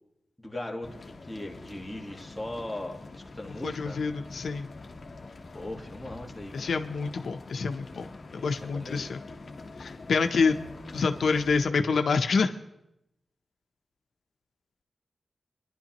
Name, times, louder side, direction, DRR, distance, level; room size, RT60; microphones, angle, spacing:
voice 1, 0.4-4.0 5.5-6.7 8.4-9.2, left 1 dB, 5° left, 0 dB, 1.6 m, -39 dB
sound 1, 0.8-11.6, left 3 dB, 45° left, 1.2 m, -45 dB
voice 2, 3.6-4.7 6.5-8.1 8.3-9.2 9.8-10.6 10.9-12.5, left 4 dB, 90° left, 7 dB, 0.7 m, -27 dB
25.5 x 11.0 x 3.0 m, 0.87 s
wide cardioid pair, 130°, 0 cm